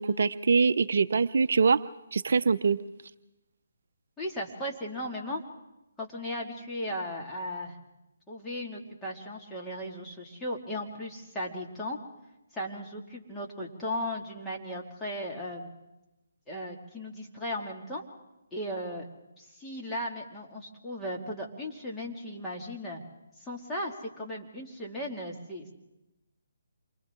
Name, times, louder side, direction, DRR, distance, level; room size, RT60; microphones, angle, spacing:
voice 1, 0.0-1.8 2.1-2.8, right 5 dB, 65° right, 12 dB, 0.6 m, -23 dB
voice 2, 4.2-5.4 6.0-7.8 8.3-12.0 12.5-15.7 16.5-18.0 18.5-19.1 19.4-23.0 23.4-25.7, left 1 dB, 10° left, -3 dB, 2.4 m, -36 dB
28.5 x 24.0 x 3.8 m, 0.94 s
hypercardioid pair, 155°, 0 cm